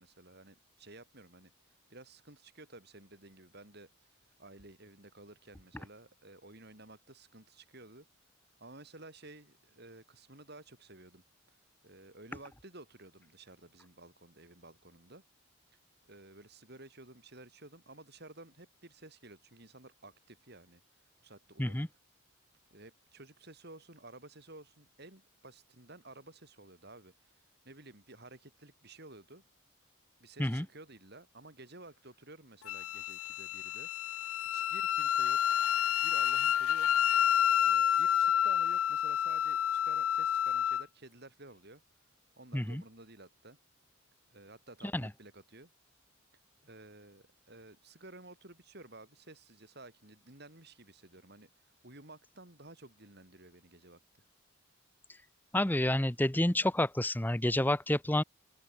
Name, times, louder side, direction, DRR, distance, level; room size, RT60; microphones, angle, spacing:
voice 1, 0.0-1.5 1.9-8.1 8.6-11.6 11.8-15.2 16.1-20.8 21.2-22.0 22.7-29.4 30.2-33.9 34.5-35.4 36.0-36.9 37.6-41.8 42.4-43.6 44.3-45.7 46.6-51.5 51.8-54.0, right 2 dB, 50° right, 5.2 m, -53 dB
Wind instrument woodwind instrument, 32.7-40.8, left 10 dB, 85° left, 0.5 m, -29 dB
voice 2, 55.5-58.2, left 1 dB, 10° left, 0.8 m, -29 dB
open air
head